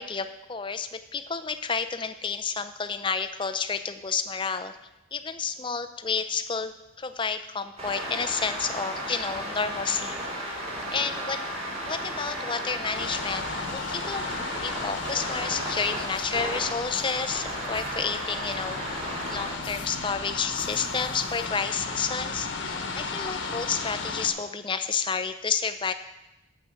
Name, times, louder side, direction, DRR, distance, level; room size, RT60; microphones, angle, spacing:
voice 1, 0.0-4.8 5.1-10.2 10.4-10.7 10.9-11.4 11.9-13.4 13.7-18.8 19.3-25.9, left 5 dB, 25° left, 10 dB, 0.6 m, -30 dB
sound 1, 7.8-19.5, right 1 dB, 30° right, 3.3 m, -34 dB
sound 2, 12.9-24.3, left 4 dB, 70° left, 1.3 m, -35 dB
9.2 x 7.5 x 8.1 m, 0.93 s
head